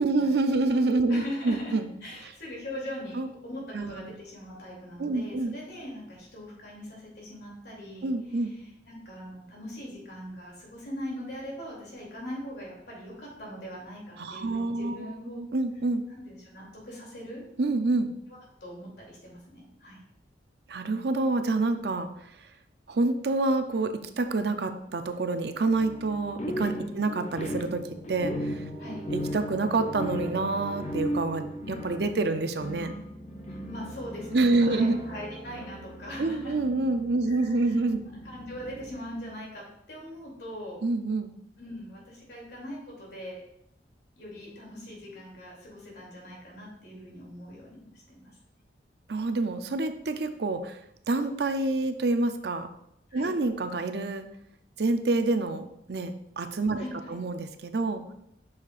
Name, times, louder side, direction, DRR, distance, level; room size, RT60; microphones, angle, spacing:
voice 1, 0.0-1.8 3.1-3.3 3.7-4.1 5.0-5.6 8.0-8.5 14.2-15.1 15.4-16.0 17.6-18.1 20.7-22.1 22.9-27.8 28.1-28.6 29.1-32.9 34.3-35.0 36.2-38.1 40.8-41.3 49.1-50.8 51.1-52.7 53.1-54.3 54.8-58.0, right 2 dB, 65° right, 8 dB, 0.6 m, -27 dB
voice 2, 1.1-15.4 16.1-17.4 18.6-20.0 26.9-27.0 28.8-29.0 33.5-36.5 37.3-37.8 38.1-40.8 41.6-43.4 44.2-48.3 53.1-53.3 56.8-57.2, equal, 70° left, -3 dB, 2.9 m, -41 dB
sound 1, 25.7-37.4 37.8-38.9, right 1 dB, 10° right, 1.8 m, -45 dB
sound 2, 26.4-39.3, equal, 40° left, 0.7 m, -37 dB
8.6 x 6.5 x 2.5 m, 0.78 s
head